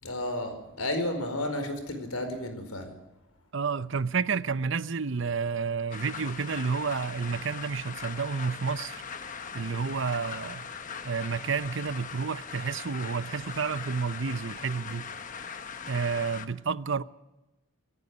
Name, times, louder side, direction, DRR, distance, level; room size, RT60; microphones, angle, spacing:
voice 1, 0.0-2.9, left 1 dB, 85° left, 4.8 m, -32 dB
voice 2, 3.5-9.0 9.5-10.7 11.0-15.1 15.9-17.0, right 5 dB, 60° right, 0.6 m, -30 dB
sound 1, 5.9-16.5, left 6 dB, 35° left, 1.1 m, -40 dB
24.5 x 11.0 x 9.9 m
head